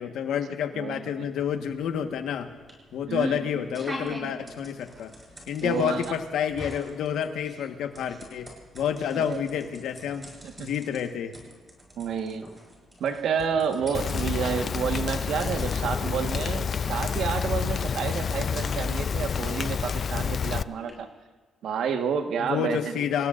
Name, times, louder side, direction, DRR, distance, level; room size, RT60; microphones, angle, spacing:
voice 1, 0.0-2.5 2.9-5.1 5.5-8.5 8.7-10.3 10.6-11.3 22.4-23.3, left 8 dB, 80° left, 6 dB, 1.4 m, -29 dB
voice 2, 0.7-1.3 3.1-3.7 5.6-6.1 9.1-9.4 10.4-10.7 12.0-12.5 13.0-21.1 21.6-23.0, right 7 dB, 70° right, 6 dB, 1.4 m, -30 dB
sound 1, 1.4-20.9, equal, 15° right, 6.6 m, -46 dB
Rain, 13.9-20.6, left 6 dB, 50° left, 0.4 m, -28 dB
27.0 x 17.5 x 2.6 m, 1.4 s
cardioid pair, 90°, 0 cm